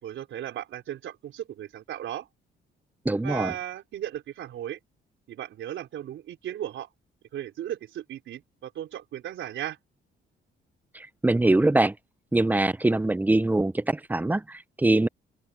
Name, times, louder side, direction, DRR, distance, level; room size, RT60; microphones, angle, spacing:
voice 1, 0.0-2.3 3.2-4.8 5.3-6.9 7.3-9.8, right 11 dB, 75° right, 4.2 m, -36 dB
voice 2, 3.0-3.5 10.9-11.9 12.3-15.1, right 2 dB, 10° right, 0.6 m, -23 dB
open air
cardioid pair, 90°, 20 cm